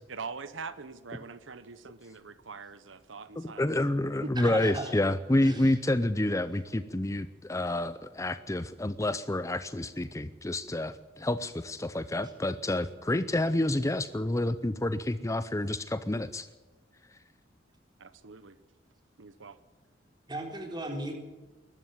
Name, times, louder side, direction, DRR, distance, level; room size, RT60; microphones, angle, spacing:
voice 1, 0.1-3.7 4.2-4.5 18.0-18.6 19.2-19.6, right 4 dB, 85° right, 14 dB, 1.0 m, -43 dB
voice 2, 3.4-16.5 17.1-17.2, left 1 dB, 15° left, 13 dB, 0.6 m, -29 dB
voice 3, 4.4-4.9 5.4-5.7 20.3-21.1, right 1 dB, 25° right, 3 dB, 3.8 m, -36 dB
21.0 x 13.0 x 9.6 m, 1.2 s
head